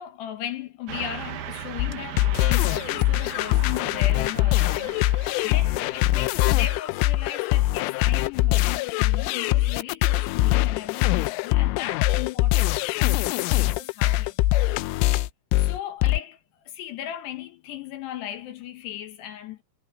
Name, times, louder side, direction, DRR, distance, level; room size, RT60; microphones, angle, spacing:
voice 1, 0.0-14.5 15.6-16.4 16.6-19.6, left 11 dB, 70° left, 3.1 m, -37 dB
Car passing by / Truck, 0.9-6.8, right 9 dB, 70° right, 1.8 m, -39 dB
sound 1, 1.8-16.2, left 16 dB, 85° left, 3.2 m, -23 dB
omnidirectional pair, 5.6 m